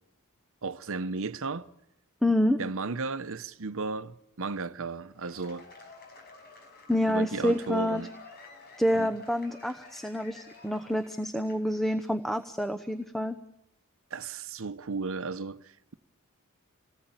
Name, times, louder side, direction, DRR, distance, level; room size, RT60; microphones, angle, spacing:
voice 1, 0.6-1.7 2.6-5.7 7.1-8.1 8.9-9.1 14.1-15.9, right 4 dB, 65° right, 0.9 m, -34 dB
voice 2, 2.2-2.6 6.9-8.0 8.8-13.4, equal, ahead, 0.9 m, -27 dB
Cheering / Applause / Crowd, 5.1-11.9, left 3 dB, 45° left, 5.5 m, -51 dB
27.5 x 19.0 x 9.0 m
head